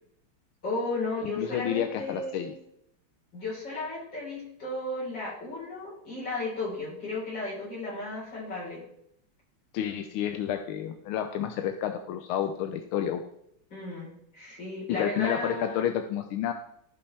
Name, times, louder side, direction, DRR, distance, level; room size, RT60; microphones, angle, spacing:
voice 1, 0.6-2.6 3.3-8.8 13.7-15.8, left 2 dB, 60° left, -6 dB, 4.6 m, -34 dB
voice 2, 1.4-2.5 9.7-13.2 14.9-16.5, left 10 dB, 90° left, 6 dB, 1.5 m, -30 dB
14.5 x 5.5 x 3.3 m, 0.75 s
omnidirectional pair, 2.2 m